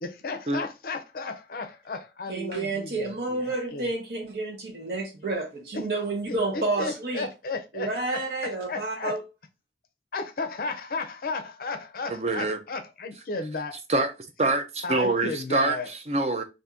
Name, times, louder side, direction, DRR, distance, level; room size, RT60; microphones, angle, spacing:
voice 1, 0.0-3.9 6.3-9.2 10.1-13.8 14.8-15.9, left 3 dB, 55° left, 0.5 m, -34 dB
voice 2, 2.3-7.3 7.7-9.2, right 2 dB, 55° right, 1.0 m, -30 dB
voice 3, 12.1-12.6 13.9-14.1 14.4-16.4, right 2 dB, 35° right, 0.5 m, -25 dB
2.7 x 2.6 x 3.6 m
head